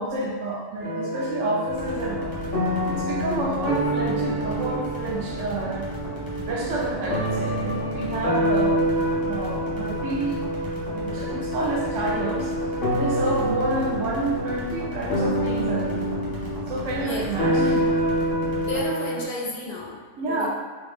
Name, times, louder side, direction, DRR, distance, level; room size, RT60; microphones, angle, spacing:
voice 1, 0.0-2.3 2.9-5.9 6.4-8.8 9.2-10.4 10.9-12.5 12.9-16.2 16.7-17.9 20.2-20.5, right 2 dB, 80° right, -1 dB, 1.0 m, -29 dB
sound 1, 0.8-19.2, right 1 dB, 80° left, 1.4 m, -27 dB
sound 2, 1.7-18.9, left 1 dB, 20° right, 0.8 m, -37 dB
voice 2, 18.6-20.0 20.3-20.5, left 2 dB, 50° left, -4 dB, 0.5 m, -32 dB
3.3 x 2.4 x 3.4 m, 1.5 s
omnidirectional pair, 1.3 m